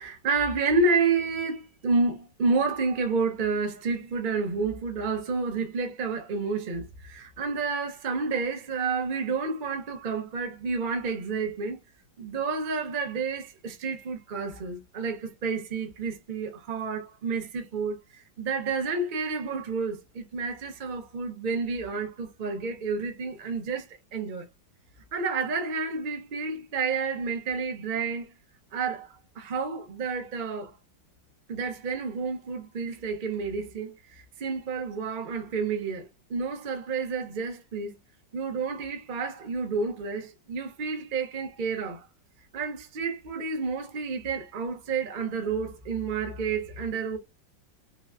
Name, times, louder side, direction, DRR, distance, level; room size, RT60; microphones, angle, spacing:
voice 1, 0.0-11.8 12.2-23.9 24.1-24.5 25.1-28.3 28.7-30.7 31.5-38.0 38.3-42.1 42.5-47.2, right 4 dB, 60° right, 0.5 m, -30 dB
3.9 x 2.1 x 2.3 m
omnidirectional pair, 2.0 m